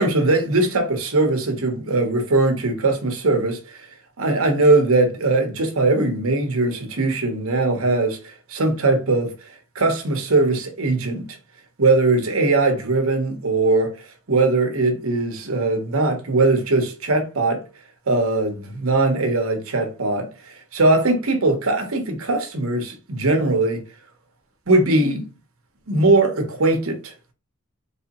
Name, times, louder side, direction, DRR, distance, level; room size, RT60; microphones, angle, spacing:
voice 1, 0.0-3.6 4.2-8.2 8.5-9.3 9.7-11.3 11.8-13.9 14.3-17.6 18.1-23.8 24.7-25.3 25.9-27.1, right 2 dB, 75° right, 1.0 m, -20 dB
4.2 x 3.2 x 2.9 m
head